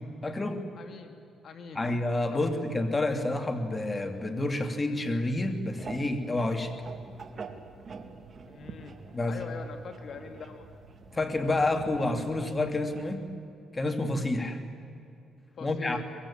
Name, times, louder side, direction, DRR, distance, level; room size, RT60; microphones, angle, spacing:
voice 1, 0.2-0.6 1.7-6.7 9.1-9.4 11.1-13.3 13.7-14.6 15.6-16.0, left 2 dB, 25° left, 6 dB, 2.9 m, -29 dB
voice 2, 0.8-1.2 1.4-1.8 2.3-2.4 8.4-9.0 9.3-10.7 15.6-16.0, left 5 dB, 55° left, 6 dB, 2.3 m, -42 dB
sound 1, 5.8-13.1, right 4 dB, 45° right, 2.4 m, -46 dB
23.5 x 22.5 x 8.8 m, 2.6 s
cardioid pair, 90°, 0 cm